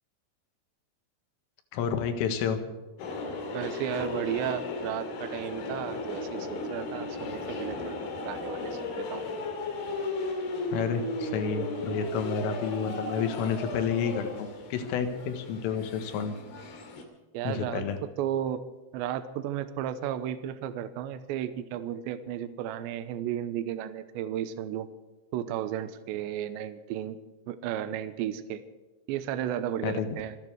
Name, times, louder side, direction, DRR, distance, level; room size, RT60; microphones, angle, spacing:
voice 1, 1.7-2.6 10.7-16.4 17.5-18.0 29.8-30.1, left 6 dB, 85° left, 7 dB, 4.2 m, -30 dB
sound 1, 3.0-17.0, left 3 dB, 60° left, 3.6 m, -35 dB
voice 2, 3.5-9.2 17.3-18.6 18.9-24.9 25.3-27.2 27.5-28.6 29.1-30.4, right 10 dB, 75° right, 11 dB, 3.0 m, -34 dB
26.5 x 9.8 x 4.8 m, 1.2 s
omnidirectional pair, 5.7 m